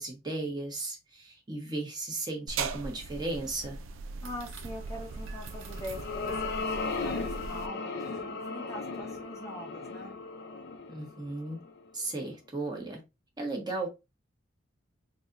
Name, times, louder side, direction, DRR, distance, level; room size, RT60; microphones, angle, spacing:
voice 1, 0.0-3.8 10.9-11.6 11.9-13.0 13.4-13.9, right 2 dB, 20° right, 1.0 m, -35 dB
sound 1, 2.5-7.7, right 4 dB, 85° right, 0.4 m, -39 dB
voice 2, 4.2-10.2, left 1 dB, 15° left, 0.7 m, -43 dB
sound 2, 5.4-11.9, left 4 dB, 55° left, 0.6 m, -36 dB
4.0 x 2.8 x 2.4 m
head